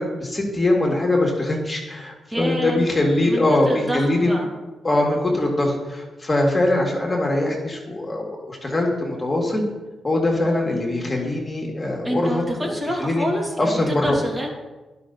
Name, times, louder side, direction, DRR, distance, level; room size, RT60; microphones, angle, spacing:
voice 1, 0.0-4.3 4.8-9.6 10.0-12.7 13.0-13.3 13.6-14.2, left 1 dB, 25° left, -1 dB, 1.9 m, -22 dB
voice 2, 2.3-2.9 3.2-4.5 12.0-14.5, equal, 25° right, -1 dB, 2.5 m, -27 dB
11.0 x 5.6 x 4.0 m, 1.2 s
cardioid pair, 60°, 0 cm